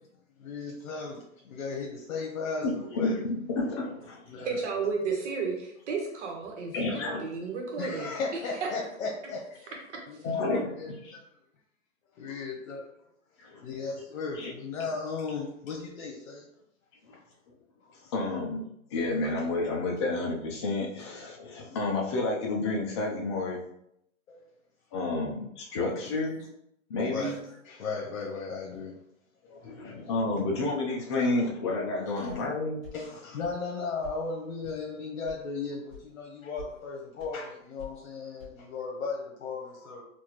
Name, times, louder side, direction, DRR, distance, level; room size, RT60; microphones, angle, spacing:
voice 1, 0.4-3.2 4.3-4.6 7.8-9.7 10.1-11.2 12.1-12.9 13.6-16.4 17.1-17.2 17.8-17.9 24.3-24.5 27.1-28.9 29.5-29.9 32.1-32.3 32.9-40.0, left 4 dB, 75° left, -1 dB, 1.0 m, -36 dB
voice 2, 3.0-4.5 6.7-7.2 10.2-10.7 13.4-13.7 14.4-14.5 17.1-17.2 18.1-18.6 18.9-23.6 24.9-26.4 26.9-27.4 29.5-32.9, left 2 dB, 20° left, -1 dB, 0.4 m, -30 dB
voice 3, 4.4-8.1, right 5 dB, 60° right, 1 dB, 1.3 m, -32 dB
sound 1, 32.3-32.5 32.8-33.0 33.4-33.6 34.0-34.2 34.6-34.8 35.3-35.4 35.9-36.1 36.4-36.7 37.2-37.3 37.8-38.0 38.4-38.5, left 6 dB, 5° right, 1.2 m, -46 dB
4.3 x 2.6 x 2.9 m, 0.75 s
hypercardioid pair, 150°, 40 cm